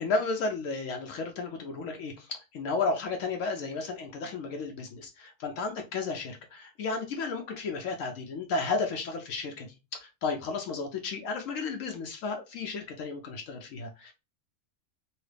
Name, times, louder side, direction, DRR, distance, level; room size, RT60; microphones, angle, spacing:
voice 1, 0.0-9.7 9.9-14.1, left 4 dB, 75° left, 3 dB, 0.9 m, -33 dB
2.9 x 2.7 x 3.2 m, 0.27 s
omnidirectional pair, 1.4 m